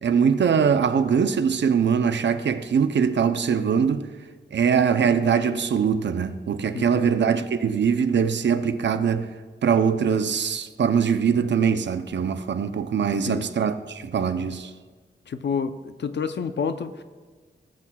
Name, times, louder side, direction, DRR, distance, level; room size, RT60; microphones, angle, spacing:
voice 1, 0.0-4.1 4.5-9.3 9.6-14.7, right 7 dB, 80° right, 0.6 m, -22 dB
voice 2, 6.7-7.1 13.3-13.5 15.3-17.0, left 6 dB, 70° left, 0.6 m, -29 dB
18.5 x 7.4 x 2.3 m
wide cardioid pair, 110°, 18 cm